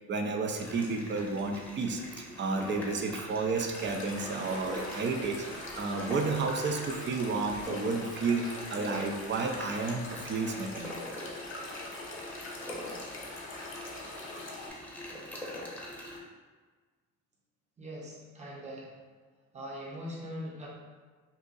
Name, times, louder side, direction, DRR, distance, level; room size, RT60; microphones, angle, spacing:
voice 1, 0.1-11.1, right 4 dB, 40° right, 4 dB, 0.5 m, -32 dB
sound 1, 0.6-16.2, left 1 dB, 5° left, 0.9 m, -43 dB
sound 2, 3.7-14.7, left 2 dB, 45° left, 0.9 m, -43 dB
voice 2, 17.8-18.9 19.5-20.7, equal, 20° right, -5 dB, 0.8 m, -41 dB
2.8 x 2.4 x 3.8 m, 1.4 s
cardioid pair, 90°, 30 cm